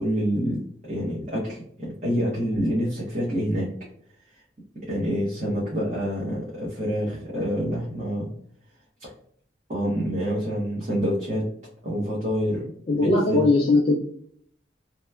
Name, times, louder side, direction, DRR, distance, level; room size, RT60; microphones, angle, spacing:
voice 1, 0.0-3.7 4.9-8.3 9.0-9.1 9.7-11.4 11.8-12.7 12.9-13.4, equal, 40° right, -6 dB, 0.8 m, -27 dB
voice 2, 12.9-14.0, left 2 dB, 30° left, -1 dB, 0.4 m, -19 dB
2.9 x 2.1 x 2.3 m, 0.62 s
head